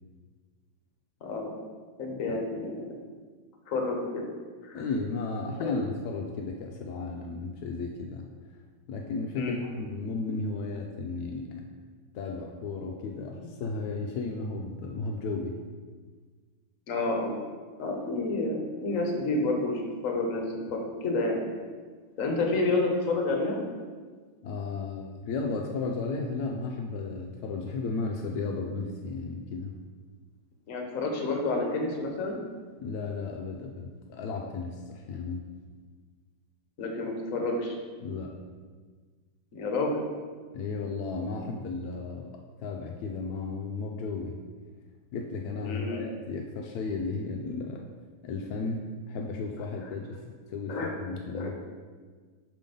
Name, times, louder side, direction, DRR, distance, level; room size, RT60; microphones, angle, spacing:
voice 1, 1.2-1.5 2.0-3.0 3.7-4.3 4.6-4.8 5.6-5.7 9.4-9.6 16.9-17.3 17.8-20.4 20.7-21.5 22.2-23.6 30.7-32.4 36.8-37.8 39.5-40.0 45.6-46.0 50.7-50.9 51.3-51.5, left 2 dB, 50° left, 1 dB, 1.1 m, -29 dB
voice 2, 4.7-8.3 8.9-11.6 12.1-15.5 24.4-29.7 32.8-35.5 38.0-38.4 40.5-44.4 45.1-47.8 48.2-51.6, left 3 dB, 80° left, 1 dB, 0.8 m, -34 dB
5.7 x 3.7 x 5.1 m, 1.5 s
omnidirectional pair, 2.2 m